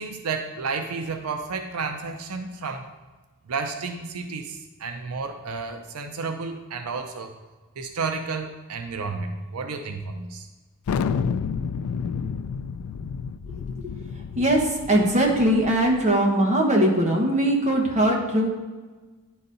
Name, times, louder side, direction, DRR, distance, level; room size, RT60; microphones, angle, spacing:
voice 1, 0.0-2.9 3.5-7.3 7.8-10.5, right 4 dB, 85° right, 5 dB, 0.6 m, -31 dB
Thunder, 10.9-16.0, left 6 dB, 80° left, 0.3 m, -30 dB
voice 2, 14.3-18.6, right 1 dB, 35° right, -1 dB, 1.2 m, -21 dB
9.9 x 4.1 x 3.9 m, 1.3 s
head